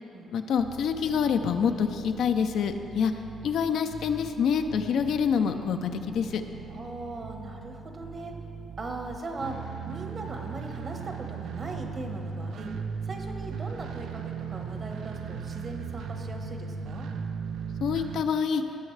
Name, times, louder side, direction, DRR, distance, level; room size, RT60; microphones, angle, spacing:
voice 1, 0.3-3.1 3.4-6.4 17.8-18.6, left 7 dB, 70° left, 7 dB, 0.5 m, -26 dB
sound 1, 0.6-18.2, right 6 dB, 75° right, 0.4 m, -38 dB
voice 2, 6.7-8.3 8.8-12.7 13.0-17.1, right 2 dB, 40° right, 3 dB, 1.2 m, -39 dB
17.0 x 6.3 x 3.3 m, 2.9 s
cardioid pair, 90°, 0 cm